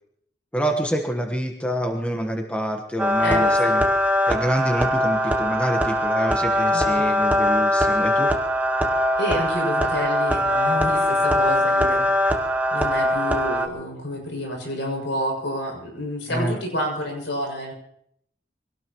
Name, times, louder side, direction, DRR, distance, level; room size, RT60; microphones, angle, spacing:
voice 1, 0.5-3.8 4.3-8.3 16.3-16.6, equal, 5° left, 4 dB, 1.3 m, -26 dB
sound 1, 3.0-13.7, left 1 dB, 10° right, 1.0 m, -21 dB
voice 2, 3.2-3.8 6.7-7.3 9.2-12.1 12.7-17.7, equal, 85° left, 0 dB, 7.1 m, -29 dB
24.5 x 18.0 x 3.1 m, 0.70 s
head